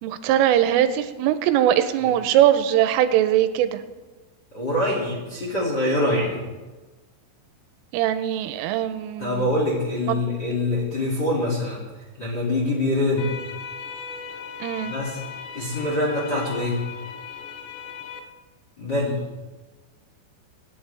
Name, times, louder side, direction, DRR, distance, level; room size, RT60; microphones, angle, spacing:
voice 1, 0.0-3.8 7.9-9.4 10.1-10.2 14.6-14.9, right 11 dB, 90° right, 11 dB, 3.3 m, -21 dB
voice 2, 4.5-6.5 9.2-11.8 12.2-13.3 14.8-15.2 15.5-16.8 18.8-19.2, left 1 dB, 30° left, -4 dB, 2.1 m, -24 dB
sound 1, 13.2-18.2, left 6 dB, 85° left, 3.8 m, -37 dB
25.0 x 10.0 x 3.4 m, 1.2 s
omnidirectional pair, 5.8 m